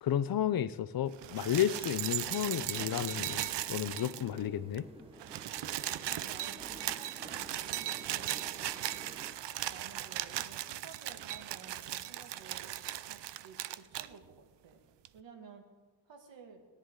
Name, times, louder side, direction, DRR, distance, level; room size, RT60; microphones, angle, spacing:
voice 1, 0.0-4.9, left 10 dB, 55° left, 15 dB, 0.6 m, -32 dB
sound 1, 1.1-4.5 4.7-4.8 5.1-14.1 15.0-15.1, right 13 dB, 70° right, 0.6 m, -38 dB
sound 2, 2.7-9.4, right 1 dB, 15° right, 1.1 m, -53 dB
voice 2, 6.1-9.2 9.7-12.7 13.0-14.8 15.1-15.7 16.1-16.6, right 5 dB, 85° right, 3 dB, 2.3 m, -54 dB
17.5 x 10.5 x 3.8 m, 1.4 s
wide cardioid pair, 165°, 43 cm